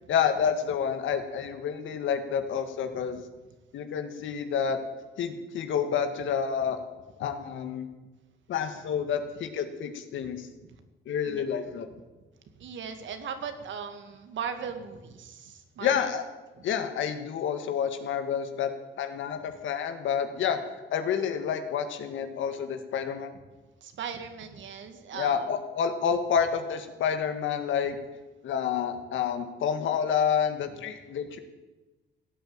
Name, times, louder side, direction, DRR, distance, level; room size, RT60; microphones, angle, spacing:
voice 1, 0.1-3.2 3.7-4.8 5.2-6.8 7.2-7.9 8.5-10.5 11.1-11.9 15.8-16.2 16.6-18.7 19.0-20.6 20.9-23.3 25.1-28.0 28.4-31.4, left 7 dB, 75° left, 8 dB, 1.9 m, -29 dB
voice 2, 12.6-16.0 16.6-16.7 23.8-25.5, right 7 dB, 70° right, 8 dB, 2.1 m, -38 dB
16.5 x 8.7 x 8.9 m, 1.2 s
cardioid pair, 90°, 20 cm